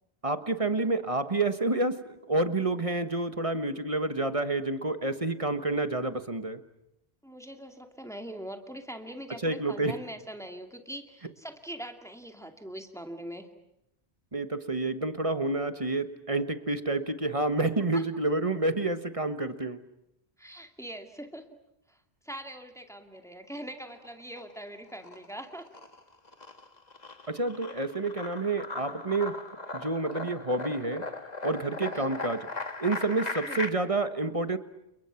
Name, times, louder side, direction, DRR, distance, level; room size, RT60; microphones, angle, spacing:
voice 1, 0.2-6.6 9.4-9.9 14.3-19.8 27.3-29.5 29.7-31.1 31.4-32.5 32.8-34.6, right 2 dB, 35° right, 10 dB, 1.4 m, -29 dB
voice 2, 7.2-13.5 17.9-18.0 20.4-21.5 21.9-22.0 22.2-25.7 31.9-32.1 33.5-33.7, right 1 dB, 5° left, 5 dB, 2.3 m, -42 dB
sound 1, 23.7-24.6 24.9-33.7, left 3 dB, 40° left, 1.8 m, -38 dB
30.0 x 30.0 x 5.9 m, 0.85 s
omnidirectional pair, 1.0 m